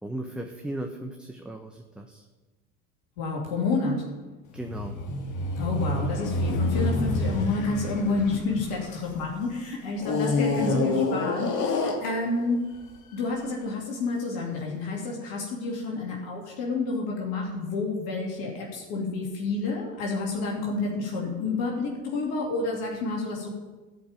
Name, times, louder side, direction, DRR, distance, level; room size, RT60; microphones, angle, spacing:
voice 1, 0.0-2.2 4.5-5.0 10.5-10.9, right 1 dB, ahead, 3 dB, 1.0 m, -37 dB
voice 2, 3.2-4.0 5.6-12.6 13.1-23.5, left 3 dB, 60° left, -2 dB, 2.8 m, -29 dB
sound 1, 4.6-9.3 10.0-12.5 13.2-13.3, left 2 dB, 45° left, 2.0 m, -28 dB
13.0 x 5.4 x 8.9 m, 1.2 s
hypercardioid pair, 70°, 41 cm